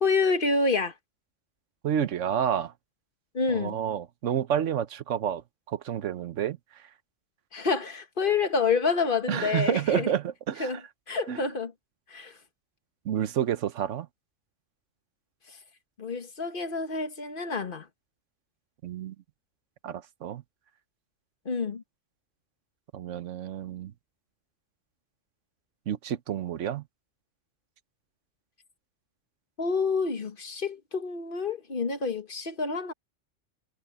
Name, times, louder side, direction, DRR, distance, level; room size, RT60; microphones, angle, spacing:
voice 1, 0.0-0.9 3.3-3.8 7.5-10.1 10.6-10.8 11.1-11.7 12.1-12.3 16.0-17.9 21.4-21.8 29.6-32.9, left 4 dB, 45° left, 1.5 m, -28 dB
voice 2, 1.8-2.7 3.5-6.9 9.3-10.8 11.3-11.4 13.0-14.1 18.8-19.1 19.8-20.4 22.9-23.9 25.9-26.8, right 9 dB, 85° right, 1.2 m, -29 dB
omnidirectional pair, 1.3 m